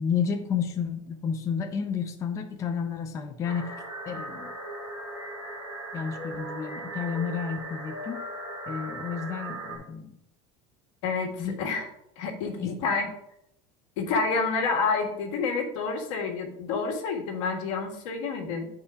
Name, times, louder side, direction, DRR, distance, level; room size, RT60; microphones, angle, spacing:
voice 1, 0.0-3.7 4.1-4.5 5.9-8.2 8.7-10.1 11.4-11.5 12.6-12.7, left 7 dB, 20° left, 5 dB, 0.5 m, -31 dB
sound 1, 3.4-9.8, right 2 dB, 10° right, 1.9 m, -38 dB
voice 2, 11.0-11.9 12.2-13.1 14.0-18.7, left 4 dB, 85° left, 3 dB, 1.6 m, -29 dB
9.7 x 4.4 x 3.5 m, 0.80 s
cardioid pair, 175°, 16 cm